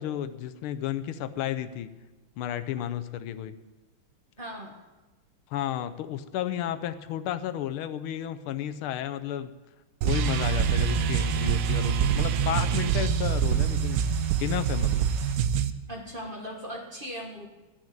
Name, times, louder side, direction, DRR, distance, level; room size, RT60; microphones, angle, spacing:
voice 1, 0.0-1.9 2.4-3.5 5.5-9.5 10.0-14.0 14.4-15.1, left 11 dB, 80° left, 11 dB, 1.5 m, -32 dB
voice 2, 4.4-4.7 15.9-17.5, equal, 30° right, 0 dB, 1.2 m, -38 dB
sound 1, 10.0-15.7, right 8 dB, 75° right, 0.9 m, -25 dB
sound 2, 10.1-15.4, right 2 dB, 55° right, 2.1 m, -46 dB
13.0 x 6.4 x 8.8 m, 1.2 s
omnidirectional pair, 2.3 m